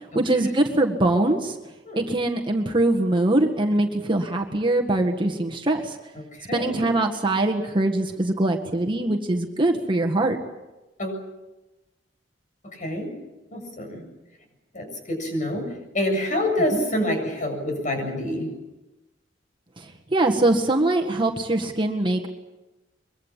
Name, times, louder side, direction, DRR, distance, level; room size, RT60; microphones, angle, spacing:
voice 1, 0.1-1.6 2.0-6.0 6.5-10.4 16.7-16.8 20.1-22.3, right 2 dB, 25° right, 3 dB, 1.8 m, -22 dB
voice 2, 6.5-6.9 11.0-11.2 12.6-13.1 13.5-14.0 14.7-15.7 15.9-18.5, left 1 dB, 45° left, 3 dB, 7.4 m, -27 dB
24.0 x 23.5 x 7.5 m, 1.1 s
head